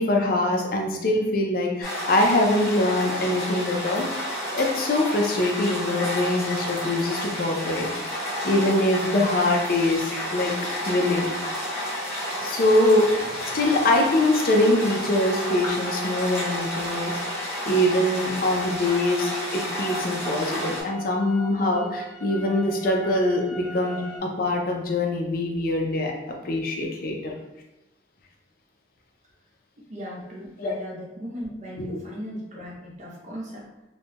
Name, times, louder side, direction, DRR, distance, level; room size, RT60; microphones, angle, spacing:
voice 1, 0.0-4.1 4.5-7.9 8.4-10.5 10.9-11.3 12.4-17.4 17.7-26.1 26.4-27.3 30.6-30.8 31.8-32.0, left 1 dB, 50° left, 1 dB, 0.5 m, -23 dB
sound 1, 1.8-20.8, equal, 15° left, 1.4 m, -31 dB
sound 2, 18.7-24.2, equal, 80° right, 0.8 m, -41 dB
voice 2, 29.8-33.7, equal, 40° right, -4 dB, 0.6 m, -37 dB
3.1 x 2.2 x 2.8 m, 0.99 s
head